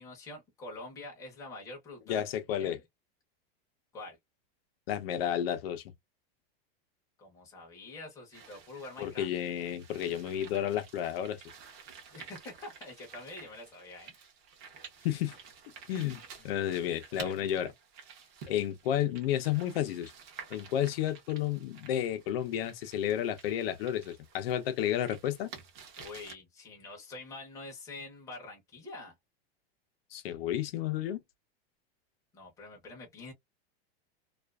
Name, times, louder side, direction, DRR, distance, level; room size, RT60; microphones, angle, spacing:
voice 1, 0.0-2.2 2.6-2.8 3.9-4.2 7.2-9.3 12.1-14.1 16.4-16.5 17.1-17.7 26.0-29.1 32.3-33.3, left 2 dB, 10° left, 0.7 m, -46 dB
voice 2, 2.1-2.8 4.9-5.8 9.0-11.4 15.0-15.4 15.9-17.7 18.5-20.1 20.5-25.5 30.1-31.2, left 11 dB, 75° left, 0.6 m, -31 dB
sound 1, 8.3-26.3, right 6 dB, 35° right, 0.7 m, -51 dB
2.4 x 2.3 x 2.2 m
supercardioid pair, 175°, 30 cm